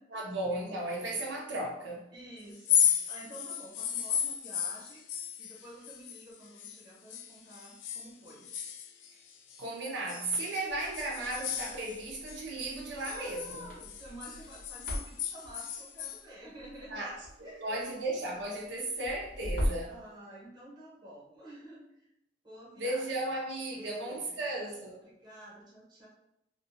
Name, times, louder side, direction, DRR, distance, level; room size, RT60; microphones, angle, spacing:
voice 1, 0.1-2.1 9.6-13.7 16.9-20.0 22.8-25.1, right 2 dB, 75° right, -2 dB, 0.5 m, -35 dB
voice 2, 2.1-5.0 5.4-8.5 13.0-17.0 17.4-17.9 19.9-22.1 22.4-23.1 23.7-24.4 25.0-26.1, right 1 dB, 25° right, -5 dB, 0.9 m, -50 dB
sound 1, 2.5-6.8 7.1-9.6 10.1-12.4 12.7-16.2, left 9 dB, 80° left, 0.3 m, -34 dB
Crackle, 10.7-20.0, equal, 55° left, 0.9 m, -41 dB
2.5 x 2.2 x 2.5 m, 0.81 s
head